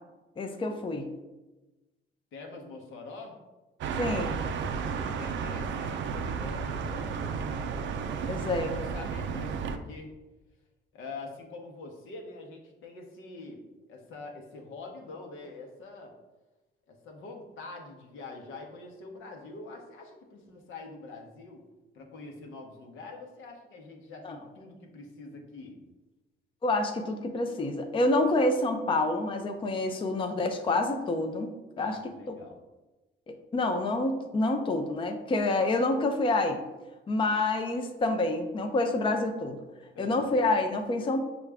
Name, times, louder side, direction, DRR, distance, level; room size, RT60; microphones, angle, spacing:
voice 1, 0.4-1.1 4.0-4.4 8.3-8.7 24.2-24.4 26.6-31.5 31.8-32.4 33.3-36.6 37.1-39.6 40.0-41.2, left 2 dB, 25° left, 5 dB, 0.4 m, -28 dB
voice 2, 2.3-3.4 4.7-7.4 8.3-10.1 10.9-16.1 16.9-21.6 21.9-25.8 31.8-32.6 39.9-40.3, left 3 dB, 80° left, 1 dB, 0.9 m, -45 dB
sound 1, 3.8-9.8, right 6 dB, 70° right, 0.4 m, -33 dB
5.9 x 2.4 x 3.4 m, 1.1 s
cardioid pair, 90°, 20 cm